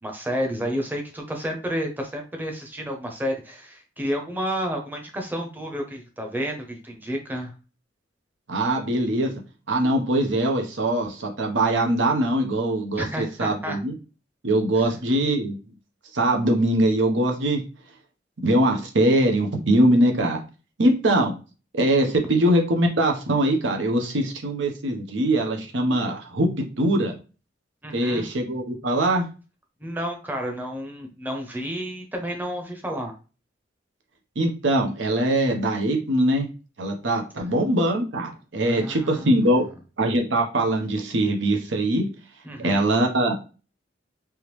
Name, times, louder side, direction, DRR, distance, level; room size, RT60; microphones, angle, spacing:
voice 1, 0.0-7.5 13.0-13.8 14.8-14.9 27.8-28.2 29.8-33.1 38.6-39.3 42.4-42.8, equal, 10° right, 2 dB, 0.8 m, -31 dB
voice 2, 8.5-9.3 9.7-13.9 14.4-15.6 16.1-17.6 18.4-20.4 20.8-21.3 21.7-26.5 26.8-27.1 27.9-29.3 34.4-36.5 36.8-39.6 40.0-42.1 42.6-43.3, right 1 dB, 75° right, 2 dB, 0.9 m, -22 dB
3.5 x 3.0 x 3.1 m, 0.33 s
head